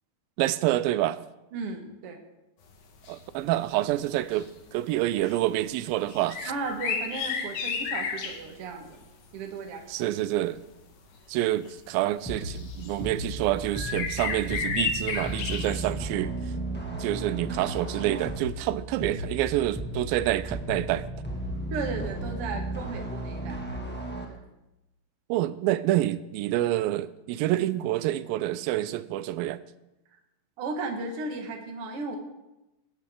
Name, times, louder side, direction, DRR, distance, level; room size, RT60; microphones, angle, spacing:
voice 1, 0.4-1.2 3.1-6.5 9.9-10.6 11.3-16.3 17.0-21.1 25.3-29.6, right 14 dB, 85° right, 16 dB, 2.4 m, -27 dB
voice 2, 1.5-2.2 6.5-9.1 9.3-9.8 21.7-24.4 30.6-32.2, right 3 dB, 50° right, 3 dB, 2.2 m, -35 dB
sound 1, 3.1-3.2 3.5-3.7 4.1-4.8 5.2-5.4 6.1-8.5 10.6-10.7 11.7-11.8 12.3-12.9 13.7-15.9, left 5 dB, 70° left, 3.3 m, -32 dB
sound 2, 12.2-24.2, right 1 dB, 10° left, 0.6 m, -35 dB
19.5 x 11.5 x 3.8 m, 0.96 s
omnidirectional pair, 4.1 m